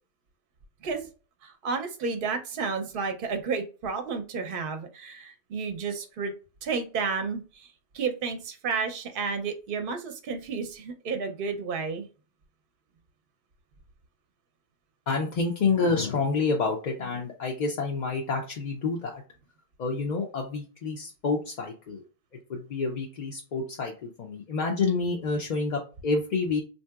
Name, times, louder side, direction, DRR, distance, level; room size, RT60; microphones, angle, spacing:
voice 1, 1.4-6.3 6.6-7.7 7.9-12.1, right 5 dB, 60° right, 7 dB, 0.8 m, -31 dB
voice 2, 15.1-19.2 19.8-22.0 22.5-26.6, left 4 dB, 55° left, 0 dB, 0.6 m, -28 dB
3.6 x 2.7 x 2.3 m, 0.34 s
omnidirectional pair, 1.1 m